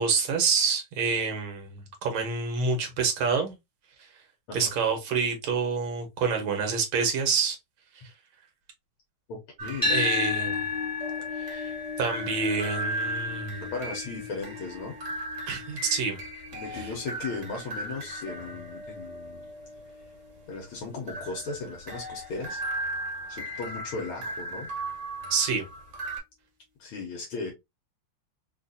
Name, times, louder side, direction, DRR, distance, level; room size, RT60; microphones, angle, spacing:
voice 1, 0.0-3.6 4.5-7.6 9.9-10.6 11.3-13.6 15.5-16.2 16.7-16.9 25.3-25.7, right 5 dB, 75° right, 1.9 m, -27 dB
voice 2, 9.3-9.9 13.7-15.0 16.5-19.5 20.5-22.6 23.3-24.7 26.8-27.5, left 4 dB, 80° left, 1.8 m, -36 dB
sound 1, 9.6-26.2, right 1 dB, 45° right, 1.2 m, -37 dB
sound 2, 9.8-18.0, left 5 dB, 35° left, 0.3 m, -33 dB
4.2 x 2.5 x 2.6 m
omnidirectional pair, 2.3 m